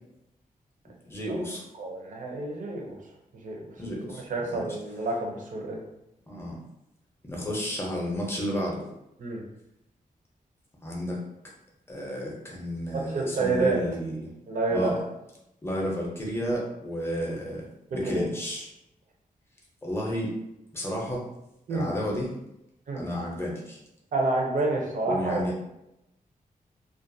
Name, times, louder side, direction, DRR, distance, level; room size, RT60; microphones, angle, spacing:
voice 1, 1.1-1.6 3.8-4.2 4.5-4.6 6.3-6.6 7.2-8.8 10.8-11.2 11.9-14.2 14.7-14.9 15.6-17.7 17.9-18.7 19.8-20.3 20.7-21.2 21.7-22.3 22.9-23.8 25.1-25.5, equal, 15° left, -3 dB, 0.6 m, -31 dB
voice 2, 1.8-3.0 3.3-3.7 4.1-5.8 9.2-9.4 12.9-13.8 14.5-14.9 18.0-18.3 21.7-21.9 22.9-23.1 24.1-25.4, right 2 dB, 60° right, 0 dB, 0.6 m, -28 dB
2.4 x 2.2 x 2.6 m, 0.87 s
wide cardioid pair, 140°, 15 cm